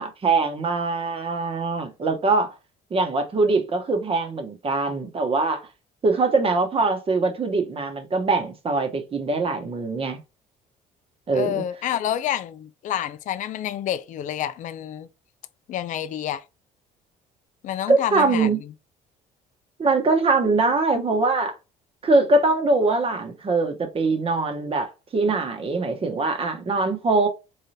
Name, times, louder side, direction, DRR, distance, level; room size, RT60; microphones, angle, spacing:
voice 1, 0.0-2.5 2.9-5.7 6.0-10.2 11.3-11.6 17.9-18.6 19.8-21.5 22.0-27.3, right 3 dB, 35° right, 1.0 m, -22 dB
voice 2, 11.3-15.1 15.7-16.4 17.6-18.5, left 11 dB, 50° left, 0.4 m, -28 dB
3.7 x 3.3 x 2.7 m
cardioid pair, 110°, 17 cm